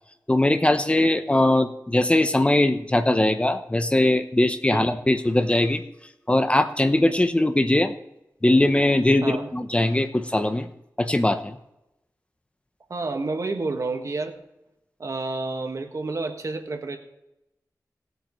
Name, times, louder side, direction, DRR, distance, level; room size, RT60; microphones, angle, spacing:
voice 1, 0.3-5.8 6.3-7.9 8.4-10.7 11.0-11.6, left 1 dB, 20° left, 9 dB, 0.8 m, -21 dB
voice 2, 12.9-14.4 15.0-17.0, right 3 dB, 55° right, 5 dB, 1.6 m, -29 dB
18.5 x 8.9 x 3.1 m, 0.89 s
wide cardioid pair, 95°, 6 cm